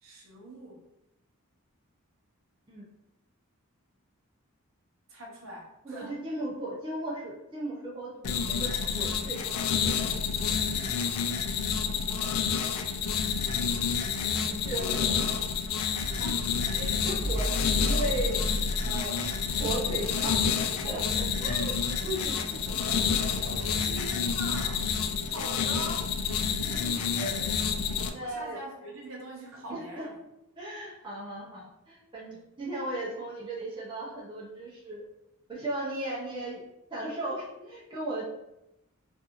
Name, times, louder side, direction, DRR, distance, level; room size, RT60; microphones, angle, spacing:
voice 1, 0.0-0.8 5.1-6.2 14.7-15.0 23.8-24.9 25.2-26.1 28.2-30.1 36.3-36.5, right 1 dB, 60° right, -2 dB, 0.7 m, -42 dB
voice 2, 5.8-9.8 14.3-15.3 16.2-16.4 16.7-17.5 17.8-18.4 18.8-20.5 20.8-22.4 22.7-23.8 26.6-27.6 28.1-28.6 29.7-30.1 30.6-35.0 35.5-36.6 36.9-38.2, right 1 dB, 20° right, -6 dB, 0.6 m, -37 dB
sound 1, 8.2-28.1, left 6 dB, 85° left, 0.3 m, -29 dB
sound 2, 16.0-24.6, equal, 30° left, 0.6 m, -36 dB
2.9 x 2.5 x 2.5 m, 0.88 s
head